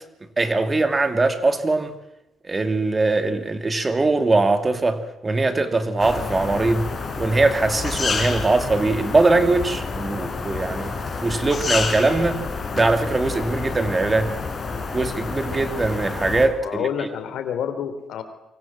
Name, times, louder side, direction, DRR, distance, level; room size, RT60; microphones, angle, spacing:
voice 1, 0.4-1.9 2.5-6.9 7.2-11.0 11.2-12.4 12.7-14.3 14.9-16.9, right 3 dB, 25° right, 8 dB, 2.7 m, -21 dB
sound 1, 6.0-16.5, left 4 dB, 40° left, 6.4 m, -29 dB
voice 2, 16.6-18.2, left 8 dB, 80° left, 9 dB, 3.7 m, -28 dB
27.5 x 24.5 x 7.7 m, 0.89 s
cardioid pair, 90°, 0 cm